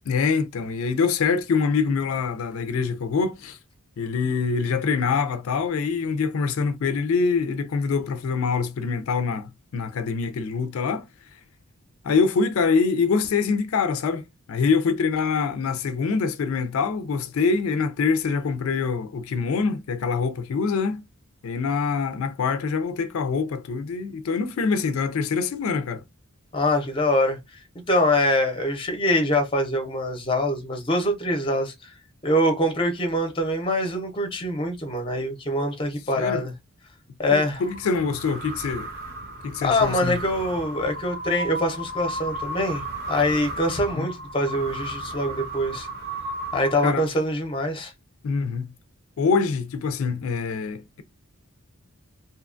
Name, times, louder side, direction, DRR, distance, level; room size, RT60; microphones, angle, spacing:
voice 1, 0.1-3.6 4.0-11.4 12.0-21.0 21.4-26.0 36.2-36.4 37.3-38.9 39.4-40.2 43.9-44.1 46.8-47.1 48.2-48.7 49.2-51.0, left 5 dB, 75° left, 0.4 m, -25 dB
voice 2, 26.5-27.6 27.9-31.9 32.2-36.5 37.2-37.6 39.6-45.9 46.5-47.9, left 1 dB, 25° left, 0.6 m, -24 dB
sound 1, 37.5-47.3, right 1 dB, 45° right, 0.7 m, -34 dB
2.8 x 2.2 x 2.4 m
head